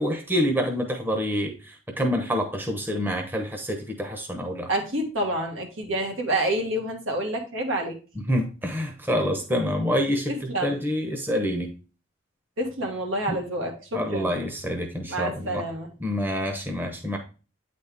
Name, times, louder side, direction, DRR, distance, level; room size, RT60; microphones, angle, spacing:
voice 1, 0.0-4.7 8.3-10.3 10.6-11.7 13.3-13.4 13.9-15.6 16.0-17.2, equal, 10° right, 3 dB, 0.9 m, -27 dB
voice 2, 4.7-7.9 10.3-10.8 12.6-14.4 15.1-15.9, right 1 dB, 80° right, 1 dB, 1.8 m, -28 dB
8.9 x 4.2 x 3.4 m, 0.33 s
head